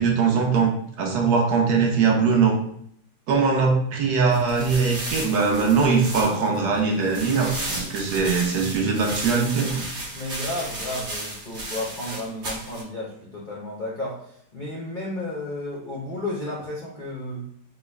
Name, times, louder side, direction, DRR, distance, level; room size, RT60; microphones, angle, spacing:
voice 1, 0.0-2.6 3.3-9.8, right 5 dB, 70° right, 0 dB, 1.2 m, -21 dB
sound 1, 4.3-12.8, right 1 dB, 45° right, 1.1 m, -34 dB
voice 2, 10.1-17.5, left 1 dB, 65° left, -4 dB, 0.4 m, -32 dB
3.8 x 2.2 x 3.3 m, 0.68 s
omnidirectional pair, 1.9 m